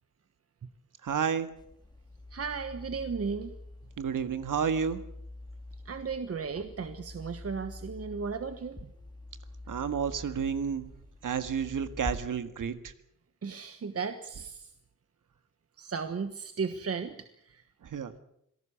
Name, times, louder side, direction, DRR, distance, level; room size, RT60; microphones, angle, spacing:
voice 1, 1.0-1.5 4.0-5.0 9.7-10.9 11.2-12.9 17.8-18.1, right 7 dB, 75° right, 10 dB, 1.8 m, -31 dB
sound 1, 1.6-12.2, left 2 dB, 15° left, 1.7 m, -45 dB
voice 2, 2.3-3.6 5.8-8.9 13.4-14.7 15.8-17.6, right 5 dB, 45° right, 8 dB, 1.3 m, -35 dB
26.5 x 18.5 x 7.1 m, 0.75 s
wide cardioid pair, 135°, 32 cm